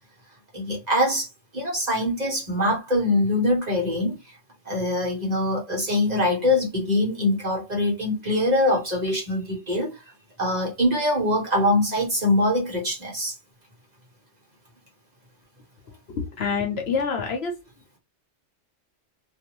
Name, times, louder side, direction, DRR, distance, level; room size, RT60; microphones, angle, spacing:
voice 1, 0.5-1.3 1.5-4.2 4.6-9.9 10.4-13.3, left 1 dB, 35° right, 1.3 m, -23 dB
voice 2, 16.1-17.5, left 5 dB, 60° left, 0.9 m, -26 dB
2.6 x 2.6 x 3.0 m
omnidirectional pair, 1.2 m